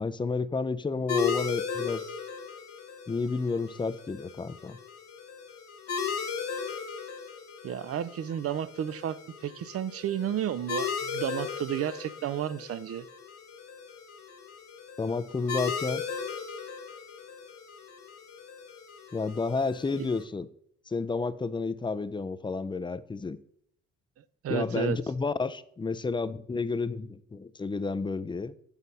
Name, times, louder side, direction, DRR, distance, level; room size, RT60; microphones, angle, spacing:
voice 1, 0.0-2.0 3.1-4.8 15.0-16.0 19.1-20.5 20.9-23.4 24.5-28.5, left 4 dB, 15° left, 14 dB, 0.4 m, -31 dB
sound 1, 1.1-20.2, left 6 dB, 60° left, 1.5 m, -37 dB
voice 2, 7.6-13.1 19.9-20.1 24.2-25.0, right 10 dB, 50° right, 17 dB, 0.5 m, -32 dB
8.2 x 4.1 x 5.4 m, 0.68 s
cardioid pair, 90°, 30 cm